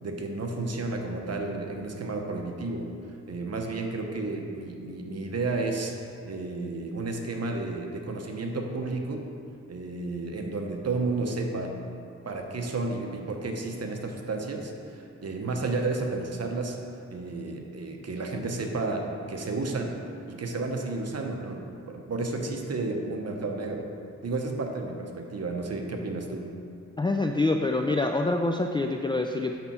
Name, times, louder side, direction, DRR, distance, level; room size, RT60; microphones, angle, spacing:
voice 1, 0.0-2.9 3.3-5.9 6.3-9.3 9.7-11.8 12.2-16.8 17.1-20.0 20.3-23.9 24.2-26.5, right 3 dB, 60° right, 2 dB, 1.0 m, -32 dB
voice 2, 27.0-29.6, left 2 dB, 15° left, 3 dB, 0.3 m, -26 dB
8.8 x 7.0 x 4.3 m, 2.5 s
wide cardioid pair, 100°, 29 cm